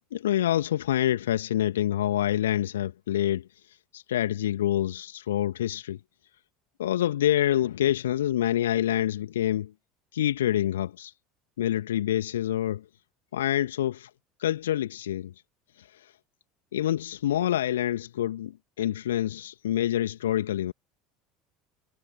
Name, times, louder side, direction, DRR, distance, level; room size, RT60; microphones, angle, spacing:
voice 1, 0.1-6.0 6.8-9.7 10.1-11.1 11.6-12.9 13.3-14.1 14.4-15.3 15.7-16.2 16.7-20.7, left 12 dB, 70° left, 2.0 m, -27 dB
figure-of-eight pair, 70°, 0 cm